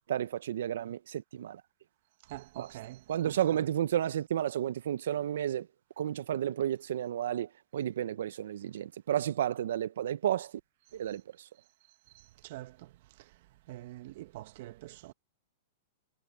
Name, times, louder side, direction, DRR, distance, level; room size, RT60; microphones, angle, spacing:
voice 1, 0.0-1.6 2.6-2.8 3.1-5.7 6.0-10.5 10.9-11.5, right 11 dB, 75° right, 0.9 m, -32 dB
voice 2, 2.3-3.3 12.4-12.9 13.7-15.1, right 16 dB, 60° right, 1.2 m, -45 dB
hypercardioid pair, 130°, 0 cm